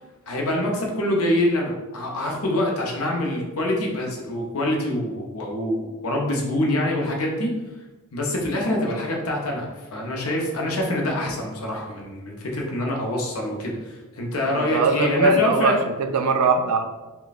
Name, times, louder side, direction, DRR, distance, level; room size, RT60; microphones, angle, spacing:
voice 1, 0.3-7.6 8.1-15.8, left 1 dB, 65° left, 0 dB, 0.7 m, -25 dB
voice 2, 14.5-16.9, right 4 dB, 75° right, 6 dB, 0.4 m, -21 dB
3.2 x 2.2 x 4.0 m, 1.2 s
head